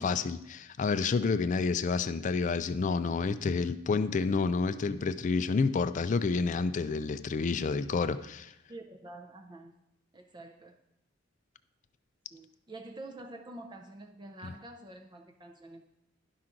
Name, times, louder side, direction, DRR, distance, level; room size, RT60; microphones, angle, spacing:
voice 1, 0.0-8.5 14.4-14.5, left 4 dB, 35° left, 12 dB, 0.3 m, -29 dB
voice 2, 8.7-9.8 10.1-10.8 12.3-16.0, right 2 dB, 20° right, 3 dB, 0.5 m, -47 dB
11.0 x 5.9 x 3.8 m, 0.85 s
head